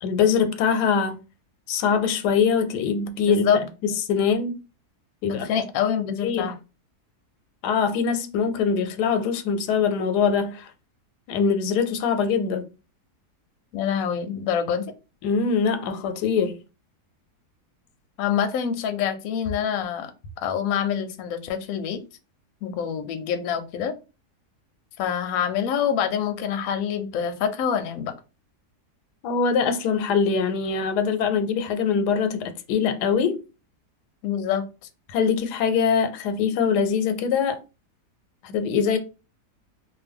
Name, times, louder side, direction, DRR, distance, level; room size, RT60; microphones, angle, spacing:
voice 1, 0.0-1.2 1.7-3.5 4.1-4.6 5.2-5.4 6.2-6.5 7.6-10.7 11.3-12.6 15.2-16.6 29.2-33.4 35.1-37.6 38.4-39.0, left 6 dB, 90° left, 1.2 m, -23 dB
voice 2, 3.3-3.6 5.2-6.5 13.7-14.9 18.2-20.1 20.4-22.0 22.6-23.9 25.0-28.1 34.2-34.6, left 8 dB, 70° left, 0.9 m, -26 dB
2.5 x 2.5 x 3.4 m
omnidirectional pair, 1.7 m